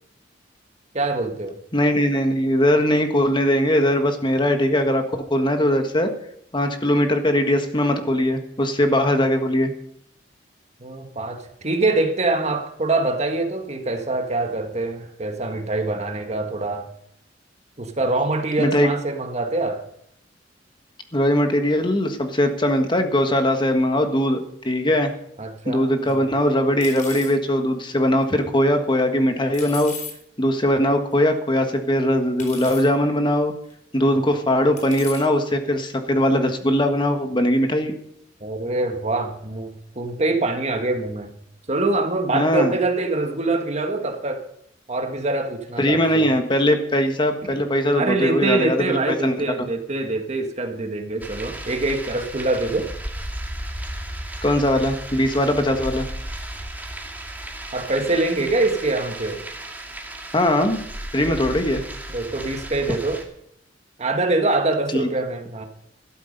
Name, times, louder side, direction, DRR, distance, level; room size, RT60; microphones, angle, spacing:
voice 1, 0.9-1.6 10.8-16.9 17.8-19.8 25.4-26.2 38.4-41.3 41.7-44.4 44.9-46.3 47.5-47.6 47.9-52.9 57.7-59.4 61.3-61.4 62.1-63.2 64.0-65.7, right 2 dB, 40° right, 1.6 m, -24 dB
voice 2, 1.7-5.0 5.3-6.1 6.5-9.7 18.6-18.9 21.1-25.1 25.7-29.9 30.4-33.5 33.9-37.9 42.3-42.7 45.8-49.7 54.4-56.0 60.3-60.8 61.1-61.8 64.9-65.1, left 1 dB, 25° left, 1.5 m, -20 dB
sound 1, 26.1-26.2 26.8-27.3 29.5-30.1 31.1-31.2 32.4-32.9 33.7-33.8 34.8-35.3, left 5 dB, 45° left, 4.5 m, -36 dB
sound 2, 51.2-63.2, right 1 dB, 10° right, 2.1 m, -34 dB
13.0 x 12.5 x 5.4 m
head